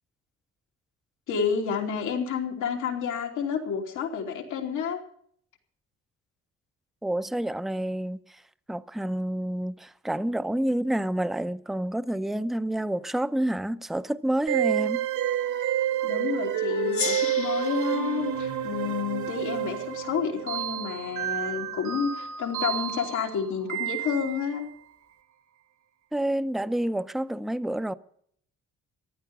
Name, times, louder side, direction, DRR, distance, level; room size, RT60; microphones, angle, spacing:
voice 1, 1.3-5.0 16.0-24.7, left 6 dB, 85° left, 3.1 m, -30 dB
voice 2, 7.0-8.4 8.7-15.1 26.1-27.9, right 1 dB, ahead, 0.6 m, -28 dB
sound 1, 14.5-24.6, right 10 dB, 70° right, 1.8 m, -29 dB
Gong, 16.9-20.1, left 7 dB, 50° left, 1.3 m, -37 dB
15.0 x 11.0 x 7.1 m
cardioid pair, 90°, 30 cm